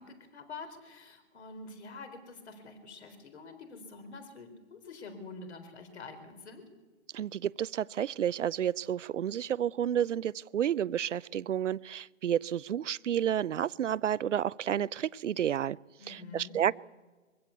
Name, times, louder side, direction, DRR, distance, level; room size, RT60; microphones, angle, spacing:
voice 1, 0.0-6.6 16.0-16.6, left 3 dB, 60° left, 8 dB, 4.2 m, -47 dB
voice 2, 7.1-15.8 16.1-16.8, right 10 dB, 70° right, 21 dB, 0.5 m, -31 dB
22.5 x 15.5 x 8.4 m, 1.3 s
hypercardioid pair, 155°, 38 cm